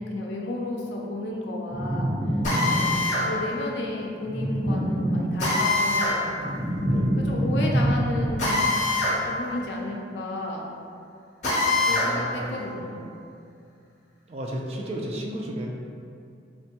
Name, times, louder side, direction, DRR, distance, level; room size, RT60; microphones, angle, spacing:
voice 1, 0.0-2.1 2.7-2.9 3.3-6.3 6.9-8.7 9.3-10.7 11.8-13.1, left 1 dB, 70° left, -1 dB, 0.5 m, -32 dB
sound 1, 1.7-3.3 4.2-5.7 6.1-8.5, equal, 20° right, 1.3 m, -26 dB
Drill, 2.4-3.3 5.4-6.2 8.4-9.2 9.5-9.6 11.4-12.1, left 2 dB, 40° left, 0.9 m, -23 dB
voice 2, 2.4-2.9 6.8-7.2 11.9-12.7 14.3-15.7, right 1 dB, 35° right, -1 dB, 0.3 m, -34 dB
4.2 x 2.2 x 2.8 m, 2.5 s
head